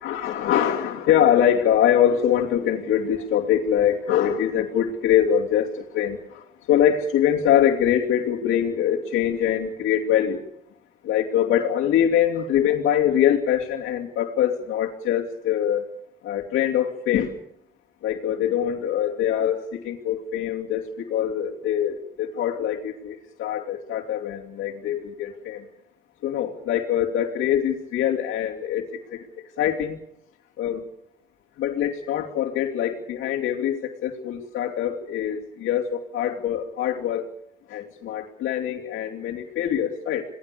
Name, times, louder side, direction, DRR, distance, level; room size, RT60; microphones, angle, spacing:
voice 1, 0.0-5.7 5.9-6.4 6.7-10.4 11.0-15.9 16.2-17.3 18.0-25.6 26.2-28.8 29.1-29.3 29.6-30.0 30.6-30.8 31.6-37.3 37.7-40.3, left 10 dB, 85° left, -4 dB, 2.9 m, -23 dB
27.5 x 18.5 x 7.0 m, 0.75 s
cardioid pair, 90°, 20 cm